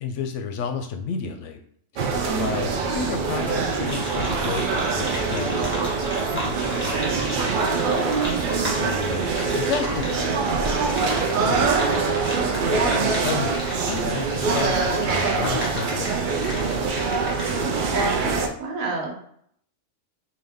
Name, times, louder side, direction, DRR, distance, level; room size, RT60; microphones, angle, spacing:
voice 1, 0.0-1.6 1.9-7.8 8.8-11.9 12.4-16.4, left 6 dB, 70° left, 5 dB, 0.9 m, -33 dB
sound 1, 2.0-18.5, right 4 dB, 60° right, 0.5 m, -24 dB
voice 2, 2.2-2.6 17.5-19.2, right 4 dB, 85° right, 0 dB, 1.4 m, -30 dB
sound 2, 3.8-17.6, left 1 dB, 10° left, 1.3 m, -35 dB
3.9 x 2.7 x 3.5 m, 0.66 s
omnidirectional pair, 1.4 m